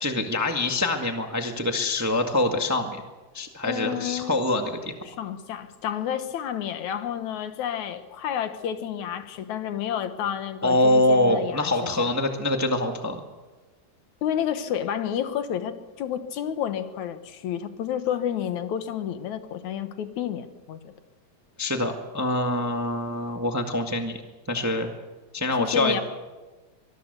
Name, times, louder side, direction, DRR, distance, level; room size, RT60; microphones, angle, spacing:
voice 1, 0.0-3.0 3.3-4.9 10.6-13.2 21.6-24.2 24.5-24.9 25.3-26.0, left 1 dB, 10° right, 4 dB, 1.0 m, -24 dB
voice 2, 3.6-4.4 5.1-12.1 14.2-20.9 25.6-26.0, left 9 dB, 80° left, 10 dB, 2.6 m, -30 dB
24.0 x 20.0 x 6.8 m, 1.2 s
omnidirectional pair, 3.4 m